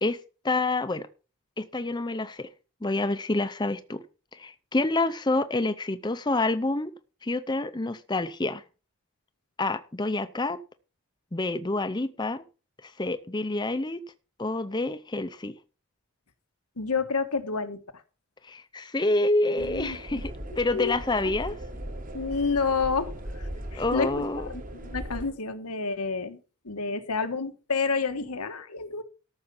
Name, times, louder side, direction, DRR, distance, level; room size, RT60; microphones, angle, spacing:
voice 1, 0.0-1.1 1.6-2.5 2.8-4.0 4.3-6.9 7.2-8.6 9.6-10.6 11.3-12.4 12.8-14.0 14.4-15.5 18.4-21.6 23.8-24.5, left 2 dB, 20° left, 0.6 m, -28 dB
voice 2, 16.8-17.8 19.6-20.2 20.7-20.9 22.1-24.2 24.5-26.4 26.6-29.0, left 4 dB, 90° left, 1.4 m, -29 dB
sound 1, 19.6-25.3, right 1 dB, 35° right, 1.5 m, -38 dB
13.5 x 6.5 x 5.5 m
head